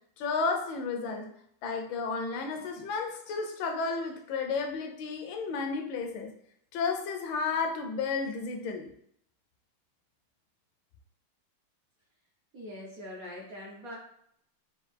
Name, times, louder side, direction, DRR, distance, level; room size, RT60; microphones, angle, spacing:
voice 1, 0.2-1.3 1.6-6.3 6.7-8.9, left 4 dB, 75° left, 5 dB, 1.2 m, -32 dB
voice 2, 12.5-14.0, left 1 dB, 70° right, -3 dB, 0.8 m, -42 dB
5.1 x 2.3 x 3.3 m, 0.69 s
omnidirectional pair, 2.4 m